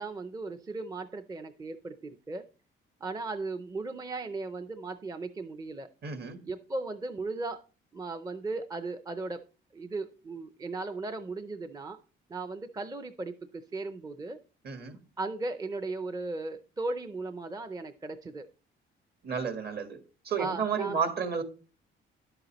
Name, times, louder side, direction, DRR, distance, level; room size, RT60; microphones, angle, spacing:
voice 1, 0.0-2.4 3.0-5.9 6.4-7.6 7.9-9.4 9.7-12.0 12.3-14.4 15.2-18.5 20.4-21.0, right 3 dB, 15° right, 10 dB, 0.5 m, -36 dB
voice 2, 6.0-6.4 14.6-15.0 19.2-20.0 20.2-21.4, right 6 dB, 50° right, 8 dB, 1.4 m, -31 dB
11.0 x 7.8 x 3.0 m, 0.36 s
cardioid pair, 135°, 21 cm